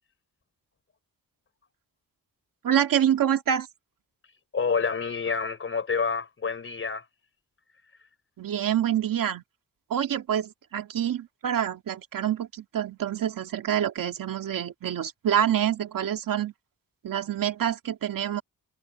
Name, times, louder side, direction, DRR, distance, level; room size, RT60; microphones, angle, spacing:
voice 1, 2.6-3.7 8.4-9.4 9.9-16.5 17.0-18.4, right 10 dB, 70° right, 2.2 m, -26 dB
voice 2, 4.5-7.0, left 5 dB, 35° left, 4.3 m, -28 dB
wide cardioid pair, 180°, 35 cm